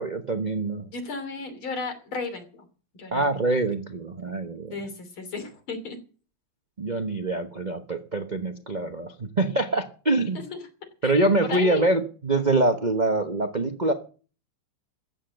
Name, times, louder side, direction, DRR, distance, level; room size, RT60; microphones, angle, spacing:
voice 1, 0.0-0.9 3.1-4.7 6.8-10.4 11.0-13.9, right 2 dB, 35° right, 6 dB, 0.7 m, -25 dB
voice 2, 0.9-2.7 3.0-3.4 4.7-6.0 10.3-10.6 11.0-11.2 11.5-11.9, left 4 dB, 70° left, 8 dB, 3.8 m, -34 dB
14.0 x 9.3 x 7.8 m, 0.39 s
omnidirectional pair, 2.4 m